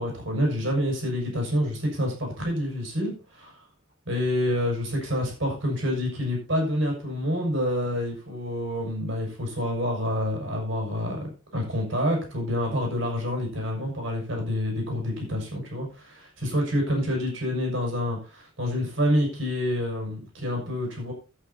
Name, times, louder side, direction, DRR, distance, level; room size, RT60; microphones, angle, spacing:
voice 1, 0.0-3.5 4.1-11.3 11.5-21.1, equal, 65° right, 1 dB, 6.3 m, -27 dB
11.5 x 9.0 x 4.2 m, 0.31 s
head